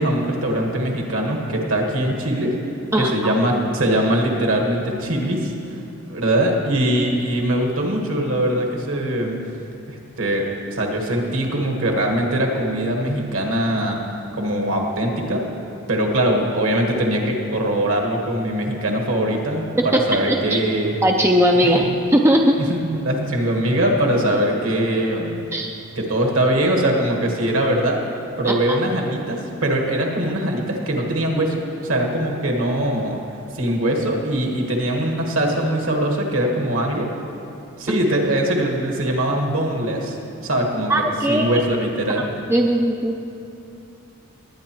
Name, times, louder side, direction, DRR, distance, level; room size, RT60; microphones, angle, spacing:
voice 1, 0.0-2.5 2.9-5.5 6.1-9.4 9.9-14.0 14.4-15.4 15.9-20.9 21.7-21.9 22.6-25.5 26.0-28.0 28.4-33.2 33.5-37.1 37.8-40.9 41.3-42.3, right 1 dB, 65° right, 1 dB, 1.6 m, -22 dB
voice 2, 2.9-3.3 19.8-20.0 20.3-20.6 21.0-21.8 22.1-22.6 25.5-25.7 28.4-28.8 37.9-38.0 40.9-41.5 42.5-43.1, right 1 dB, 10° right, 1 dB, 0.4 m, -18 dB
20.0 x 9.3 x 3.1 m, 2.8 s
head